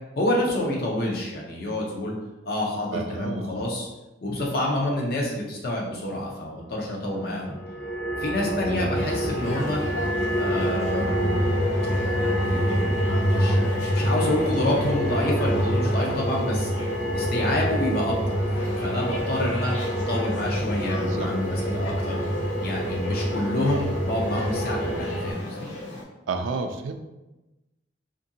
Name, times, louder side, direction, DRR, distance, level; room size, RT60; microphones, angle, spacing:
voice 1, 0.2-2.1 2.5-3.9 4.2-7.6 8.2-9.8 10.3-11.5 11.8-13.0 13.2-16.7 17.1-18.4 18.8-19.7 20.1-22.2 22.6-25.7, left 1 dB, 50° left, -2 dB, 0.6 m, -28 dB
voice 2, 2.9-3.6 8.7-8.9 21.0-21.3 26.3-26.9, right 4 dB, 90° right, 7 dB, 0.3 m, -31 dB
sound 1, 7.5-25.3, equal, 5° left, 0.5 m, -26 dB
sound 2, 8.9-26.0, left 1 dB, 90° left, 0.7 m, -37 dB
2.7 x 2.5 x 2.6 m, 1.0 s
head